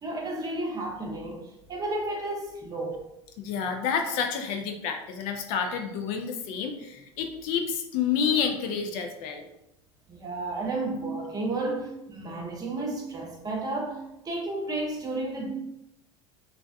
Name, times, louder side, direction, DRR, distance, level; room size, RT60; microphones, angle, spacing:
voice 1, 0.0-3.0 10.1-15.5, right 2 dB, 25° right, 0 dB, 0.7 m, -32 dB
voice 2, 3.4-9.5, left 7 dB, 60° left, 5 dB, 0.4 m, -29 dB
2.3 x 2.2 x 2.6 m, 0.85 s
hypercardioid pair, 70°, 15 cm